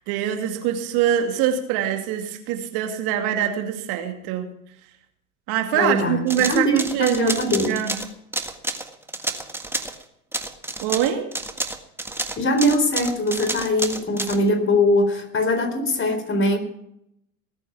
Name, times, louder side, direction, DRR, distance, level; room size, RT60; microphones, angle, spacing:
voice 1, 0.0-4.4 5.5-7.9 10.8-11.3, right 10 dB, 55° right, 5 dB, 2.5 m, -24 dB
voice 2, 5.7-7.8 12.4-16.6, left 1 dB, 25° left, 7 dB, 4.0 m, -22 dB
sound 1, 6.3-10.0 10.3-14.4, right 2 dB, 5° right, 1.7 m, -29 dB
19.5 x 8.9 x 5.9 m, 0.76 s
hypercardioid pair, 80°, 43 cm